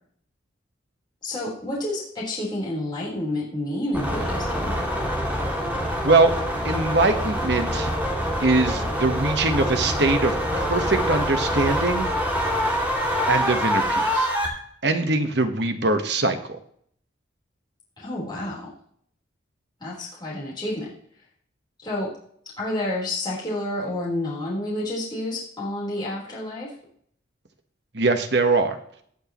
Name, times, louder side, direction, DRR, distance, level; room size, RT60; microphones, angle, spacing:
voice 1, 1.2-4.7 18.0-18.7 19.8-20.9 21.8-22.1 22.6-26.7, left 1 dB, 20° left, -6 dB, 4.0 m, -29 dB
sound 1, 3.9-14.5, equal, 10° right, 2.5 m, -25 dB
voice 2, 6.6-7.9 8.4-12.1 13.3-14.3 14.8-16.6 27.9-28.8, right 3 dB, 60° right, 7 dB, 1.3 m, -22 dB
19.5 x 6.5 x 3.1 m, 0.63 s
head